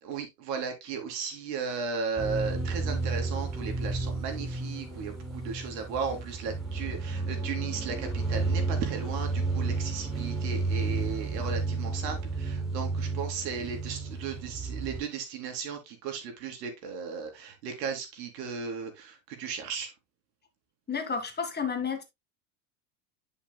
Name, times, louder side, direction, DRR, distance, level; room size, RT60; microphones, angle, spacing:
voice 1, 0.0-19.9, right 6 dB, 85° right, 3.1 m, -36 dB
sound 1, 2.2-15.0, right 3 dB, ahead, 5.4 m, -32 dB
voice 2, 20.9-22.0, left 6 dB, 20° left, 2.0 m, -31 dB
10.5 x 5.8 x 2.3 m
supercardioid pair, 120°, 48 cm